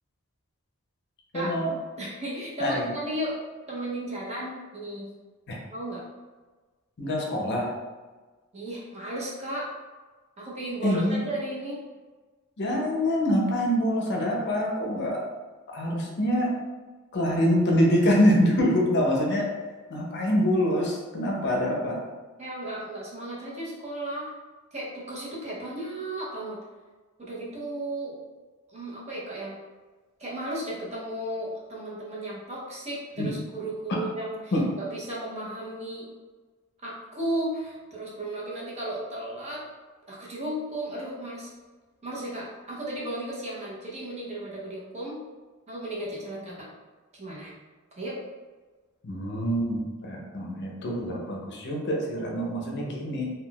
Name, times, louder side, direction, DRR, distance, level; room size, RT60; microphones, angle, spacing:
voice 1, 1.3-1.7 2.6-2.9 5.5-5.6 7.0-7.7 10.8-11.2 12.6-15.2 15.7-16.5 17.1-19.5 19.9-22.0 33.2-33.3 34.5-34.6 49.0-53.2, equal, 55° left, -1 dB, 0.6 m, -25 dB
voice 2, 2.0-3.4 3.7-5.1 5.7-6.0 8.5-9.7 10.4-11.8 22.4-24.3 24.7-26.6 27.2-28.2 28.7-29.6 30.2-36.1 36.8-39.6 40.1-41.5 42.0-45.2 45.7-46.7 47.1-47.5 48.0-48.2, right 1 dB, 30° right, -6 dB, 0.7 m, -34 dB
3.6 x 2.3 x 2.3 m, 1.3 s
head